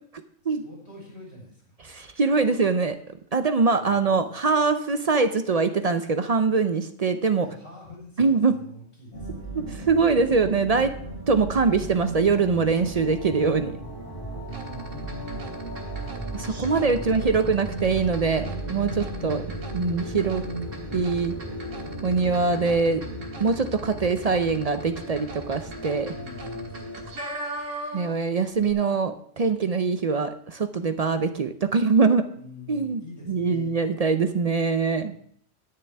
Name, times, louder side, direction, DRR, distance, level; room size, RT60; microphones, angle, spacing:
voice 1, 0.4-1.8 3.8-4.0 7.4-9.5 14.4-15.4 16.8-17.4 19.1-20.0 26.1-26.9 32.3-33.7, equal, 55° left, -2 dB, 4.2 m, -44 dB
voice 2, 1.8-3.0 3.3-7.5 8.2-8.5 9.5-10.9 11.3-13.7 16.3-19.4 19.7-20.4 20.9-21.4 22.0-23.0 23.4-26.1 27.9-32.3 32.7-33.0 33.3-35.1, right 4 dB, 55° right, 9 dB, 0.4 m, -23 dB
sound 1, 9.1-27.1, right 1 dB, 25° left, 4.9 m, -35 dB
sound 2, 14.5-28.3 28.5-28.7, right 1 dB, 70° right, 2.0 m, -41 dB
20.0 x 6.8 x 3.4 m, 0.63 s
omnidirectional pair, 1.4 m